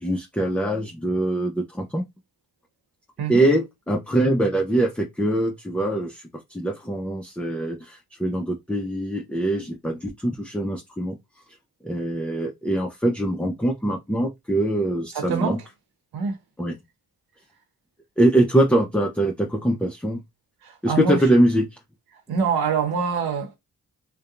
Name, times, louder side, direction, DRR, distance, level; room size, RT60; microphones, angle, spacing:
voice 1, 0.0-2.1 3.3-6.2 6.5-11.2 11.8-15.6 16.6-16.8 18.2-20.2 20.8-21.7, right 1 dB, 5° left, 0.5 m, -23 dB
voice 2, 15.1-15.6 16.1-16.4 20.6-21.2 22.3-23.6, right 6 dB, 65° right, 0.9 m, -25 dB
2.6 x 2.2 x 2.4 m
hypercardioid pair, 40°, 40 cm